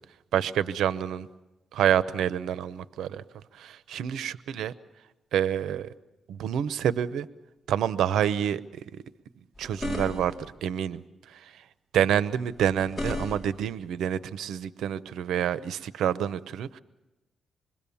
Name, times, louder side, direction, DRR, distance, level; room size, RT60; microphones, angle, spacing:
voice 1, 0.3-1.3 1.7-3.2 3.5-4.7 5.3-5.9 6.3-7.3 7.7-9.0 9.6-10.3 10.6-11.0 11.3-11.6 11.9-16.8, right 9 dB, 90° right, 15 dB, 0.7 m, -28 dB
sound 1, 9.5-10.5 12.5-13.7, left 1 dB, 20° left, 5.3 m, -34 dB
26.5 x 22.0 x 7.1 m, 1.1 s
cardioid pair, 100°, 0 cm